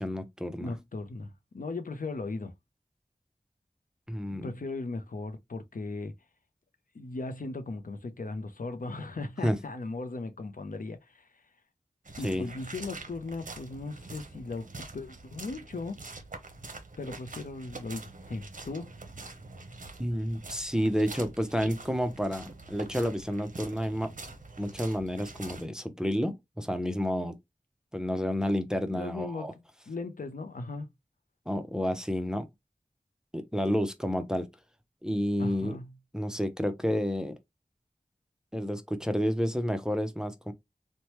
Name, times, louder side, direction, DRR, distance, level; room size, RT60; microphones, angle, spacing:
voice 1, 0.0-0.7 4.1-4.5 9.4-9.6 12.2-12.4 20.0-24.1 24.6-27.3 27.9-29.5 31.5-32.5 33.3-34.5 35.0-35.8 36.1-37.4 38.5-40.5, equal, 5° right, 0.5 m, -30 dB
voice 2, 0.6-2.5 4.3-6.1 6.9-11.3 12.2-16.0 17.0-18.9 28.9-29.5 29.9-30.9 35.4-35.9, left 3 dB, 70° left, 0.5 m, -37 dB
sound 1, 12.0-25.7, right 3 dB, 60° right, 0.7 m, -45 dB
3.1 x 2.1 x 2.8 m
wide cardioid pair, 45°, 15 cm